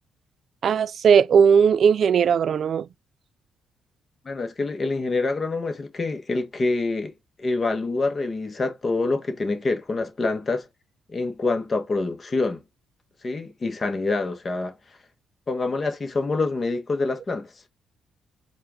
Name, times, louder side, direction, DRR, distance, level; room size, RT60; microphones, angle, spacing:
voice 1, 0.6-2.9, right 7 dB, 55° right, 0.3 m, -18 dB
voice 2, 4.2-7.1 7.4-10.7 11.1-12.6 13.2-14.8 15.5-17.5, left 3 dB, 35° left, 1.1 m, -26 dB
4.4 x 2.4 x 3.6 m
cardioid pair, 90°, 0 cm